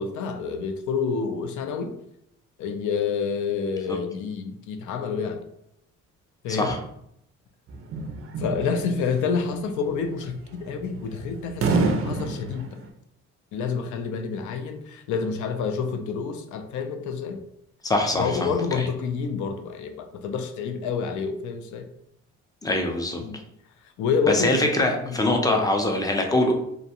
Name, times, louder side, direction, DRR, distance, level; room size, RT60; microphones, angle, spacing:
voice 1, 0.0-2.0 2.6-5.4 6.4-6.8 8.4-12.7 13.5-17.4 18.2-21.9 23.2-23.4 24.0-24.6 25.0-25.2 25.5-25.7, left 5 dB, 80° left, 0.5 m, -28 dB
voice 2, 6.5-6.8 17.8-18.9 22.6-23.2 24.3-26.5, left 1 dB, 10° left, 0.5 m, -23 dB
sound 1, 7.7-12.9, right 4 dB, 50° right, 0.4 m, -28 dB
2.6 x 2.1 x 2.8 m
cardioid pair, 90°, 30 cm